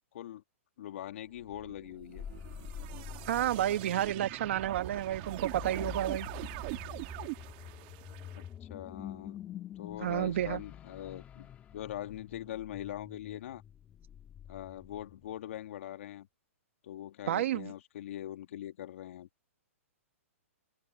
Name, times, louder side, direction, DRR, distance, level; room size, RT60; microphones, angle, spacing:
voice 1, 0.8-2.3 8.6-9.4 9.8-13.6 14.5-16.3 16.8-19.3, left 12 dB, 60° left, 2.1 m, -42 dB
sound 1, 1.4-8.5, right 24 dB, 40° right, 1.9 m, -43 dB
sound 2, 1.9-15.4, left 10 dB, 20° left, 1.9 m, -47 dB
voice 2, 3.3-6.3 10.0-10.6 17.3-17.7, right 12 dB, 60° right, 1.6 m, -31 dB
open air
hypercardioid pair, 150°, 8 cm